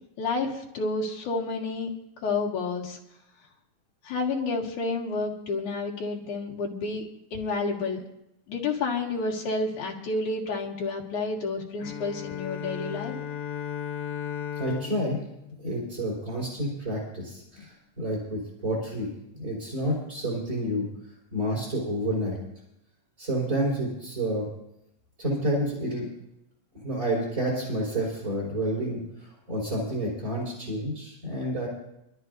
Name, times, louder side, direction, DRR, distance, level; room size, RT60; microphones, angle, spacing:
voice 1, 0.2-1.9 2.2-3.0 4.0-8.1 8.5-13.1, left 3 dB, 90° left, -2 dB, 3.6 m, -30 dB
Bowed string instrument, 11.8-16.5, left 9 dB, 60° left, 1.8 m, -36 dB
voice 2, 14.6-15.2 15.6-20.9 21.3-22.4 23.2-24.5 25.2-26.1 26.7-31.7, right 1 dB, 25° right, -7 dB, 5.2 m, -29 dB
25.5 x 13.0 x 2.7 m, 0.83 s
omnidirectional pair, 3.4 m